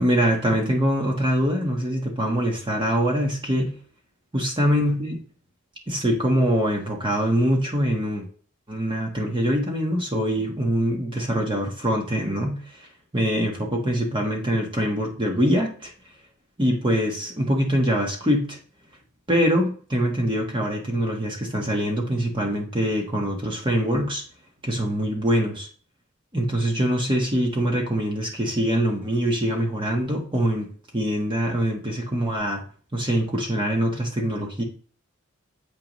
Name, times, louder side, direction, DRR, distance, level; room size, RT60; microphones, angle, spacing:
voice 1, 0.0-3.7 4.3-5.2 5.9-8.2 8.7-12.9 13.1-15.9 16.6-18.6 19.3-24.2 24.6-25.7 26.3-30.7 30.9-32.6 32.9-34.6, equal, 25° right, 0 dB, 1.2 m, -24 dB
7.7 x 5.2 x 3.0 m, 0.43 s
head